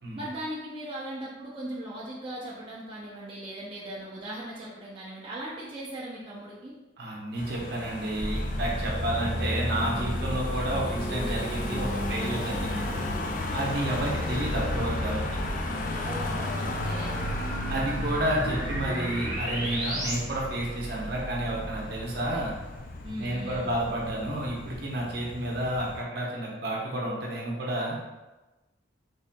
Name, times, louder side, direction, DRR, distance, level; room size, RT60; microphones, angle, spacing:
voice 1, 0.1-6.7 10.2-10.3 12.2-13.3 16.0-17.2 23.0-23.7, right 1 dB, 30° right, -7 dB, 0.6 m, -39 dB
voice 2, 7.0-12.8 13.5-15.2 17.7-22.5 23.2-28.0, right 1 dB, 60° right, -3 dB, 0.9 m, -30 dB
Car passing by / Engine, 7.4-26.0, left 2 dB, 45° left, 0.4 m, -36 dB
sound 1, 8.2-20.1, equal, ahead, 1.2 m, -33 dB
4.2 x 3.4 x 2.2 m, 1.1 s
head